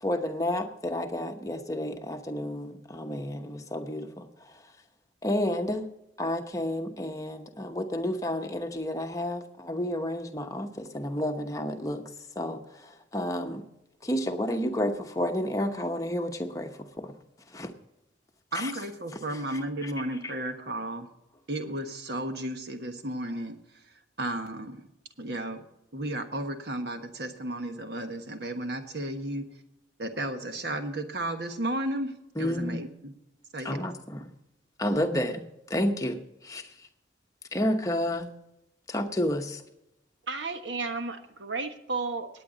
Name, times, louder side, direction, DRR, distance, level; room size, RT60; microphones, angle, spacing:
voice 1, 0.0-4.6 5.2-5.9 6.2-12.1 12.3-13.7 14.0-17.1 17.5-17.7 18.5-18.7 19.3-19.9 32.4-32.8 33.6-34.3 34.8-35.4 35.7-36.9 37.5-38.3 38.9-39.6, left 1 dB, 15° left, 5 dB, 1.0 m, -31 dB
voice 2, 18.5-21.1 21.5-23.6 24.2-24.9 25.2-25.6 25.9-29.5 30.0-32.1 32.4-33.1 33.5-33.8 35.1-35.3, right 1 dB, 60° right, 6 dB, 1.4 m, -33 dB
voice 3, 40.3-42.3, right 3 dB, 75° right, 7 dB, 1.3 m, -33 dB
18.0 x 9.2 x 4.0 m, 0.89 s
head